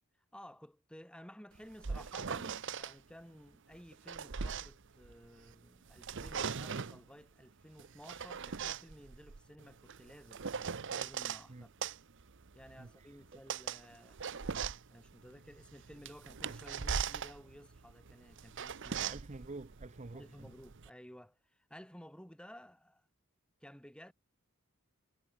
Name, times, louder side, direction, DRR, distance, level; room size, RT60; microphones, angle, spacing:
voice 1, 0.3-10.4 10.9-11.9 12.5-14.2 14.9-19.1 20.1-23.1 23.6-24.1, equal, 5° left, 3.5 m, -55 dB
sound 1, 1.5-2.9 3.7-5.5 5.9-7.0 7.8-11.4 11.8-20.9, right 6 dB, 60° right, 0.8 m, -40 dB
voice 2, 12.8-13.4 19.0-20.5, right 2 dB, 35° right, 0.7 m, -49 dB
head